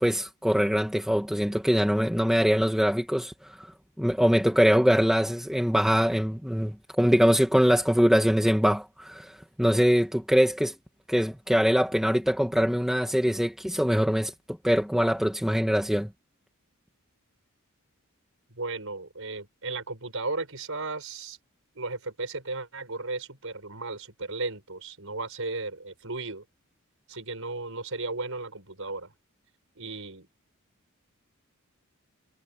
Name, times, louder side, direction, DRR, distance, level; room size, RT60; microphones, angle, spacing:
voice 1, 0.0-3.7 4.0-10.7 11.1-14.3 14.6-16.1, equal, ahead, 1.9 m, -23 dB
voice 2, 18.5-21.4 21.8-26.4 27.1-29.1 29.8-30.3, right 3 dB, 65° right, 7.2 m, -35 dB
head